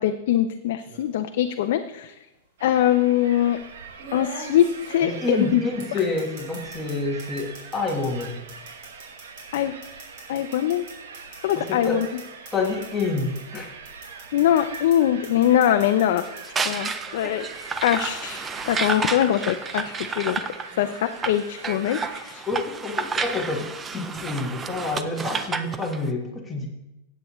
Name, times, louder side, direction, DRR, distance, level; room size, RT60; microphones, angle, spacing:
voice 1, 0.0-2.1 2.6-3.6 4.1-5.6 9.5-9.7 10.3-10.8 11.4-12.1 14.3-16.2 16.6-20.4 20.8-22.5, left 11 dB, 55° left, 6 dB, 0.5 m, -22 dB
sound 1, 0.8-1.1 2.3-2.4 4.0-6.9 7.2-13.6 13.8-15.0 15.2-16.4, right 3 dB, 45° right, 4.1 m, -42 dB
sound 2, 2.6-22.2, right 5 dB, 90° right, 1.0 m, -43 dB
voice 2, 5.0-8.4 11.5-12.1 12.5-13.7 22.5-26.7, left 3 dB, 10° left, -1 dB, 1.3 m, -28 dB
sound 3, 16.2-26.0, right 4 dB, 10° right, 0.4 m, -31 dB
14.5 x 8.3 x 3.1 m, 0.92 s
supercardioid pair, 170°, 0 cm